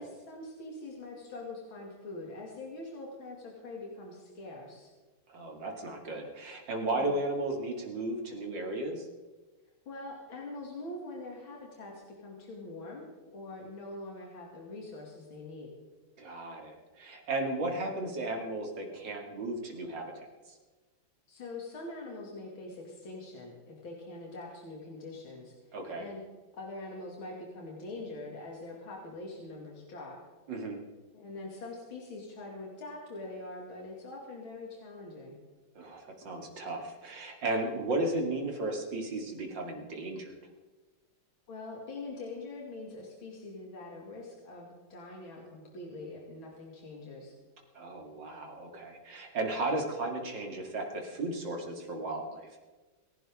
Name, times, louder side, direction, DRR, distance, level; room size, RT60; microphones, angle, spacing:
voice 1, 0.0-4.9 6.9-7.2 9.9-13.0 13.3-15.7 21.3-25.5 25.9-26.2 26.6-30.2 31.1-35.4 41.5-47.3, left 2 dB, 75° left, -2 dB, 3.3 m, -43 dB
voice 2, 5.3-9.1 16.2-20.3 25.7-26.1 30.5-30.8 35.7-40.3 47.7-52.5, right 2 dB, 60° right, 2 dB, 3.2 m, -35 dB
28.5 x 11.5 x 3.7 m, 1.3 s
omnidirectional pair, 2.2 m